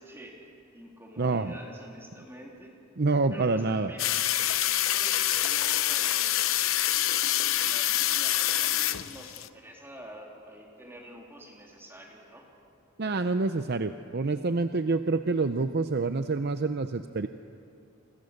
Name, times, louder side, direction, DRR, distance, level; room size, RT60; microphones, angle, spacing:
voice 1, 0.0-2.7 3.3-4.2 4.8-6.3 7.4-12.5, equal, 10° right, -1 dB, 3.6 m, -47 dB
voice 2, 1.2-1.5 3.0-3.9 13.0-17.3, right 3 dB, 50° right, 9 dB, 0.7 m, -27 dB
sound 1, 4.0-9.5, left 13 dB, 75° left, 0.8 m, -26 dB
28.5 x 26.0 x 6.7 m, 2.5 s
head